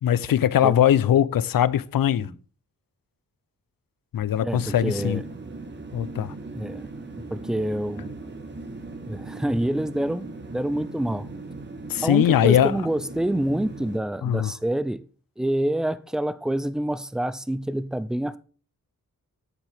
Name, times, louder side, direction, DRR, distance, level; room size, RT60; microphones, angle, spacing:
voice 1, 0.0-2.3 4.1-5.2 5.9-6.3 11.9-12.8 14.2-14.5, left 10 dB, 80° left, 0.5 m, -21 dB
voice 2, 4.4-5.2 6.5-8.1 9.0-11.3 12.0-15.0 15.4-18.4, right 1 dB, ahead, 0.3 m, -27 dB
sound 1, 4.5-14.0, right 3 dB, 30° right, 1.2 m, -39 dB
9.6 x 7.4 x 3.4 m
wide cardioid pair, 110°, 34 cm